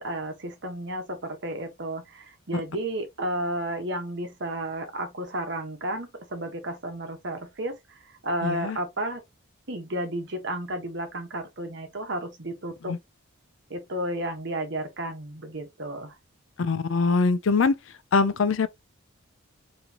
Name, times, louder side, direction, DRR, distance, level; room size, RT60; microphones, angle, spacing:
voice 1, 0.0-9.2 9.7-13.0 13.7-16.1, right 1 dB, 60° right, 1.1 m, -32 dB
voice 2, 8.4-8.8 12.9-13.0 16.6-17.8 18.1-18.7, left 4 dB, 70° left, 0.5 m, -23 dB
3.8 x 3.1 x 2.9 m
head